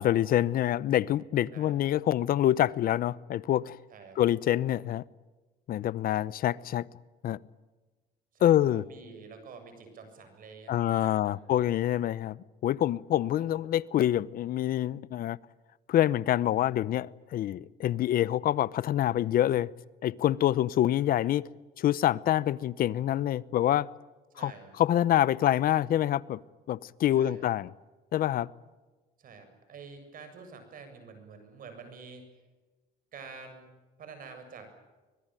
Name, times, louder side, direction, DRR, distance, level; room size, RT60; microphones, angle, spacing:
voice 1, 0.0-3.8 4.2-5.0 5.7-6.8 7.2-7.4 8.4-8.8 10.7-15.4 15.9-19.7 20.0-21.5 21.8-23.9 24.4-24.5 24.8-26.4 26.7-27.7 28.1-28.5, left 12 dB, 60° left, 0.8 m, -26 dB
voice 2, 8.3-11.4 24.3-24.7 27.1-27.4 29.2-32.3 33.1-33.7 34.0-34.7, right 5 dB, 55° right, 7.5 m, -48 dB
25.0 x 21.5 x 9.1 m
cardioid pair, 110°, 17 cm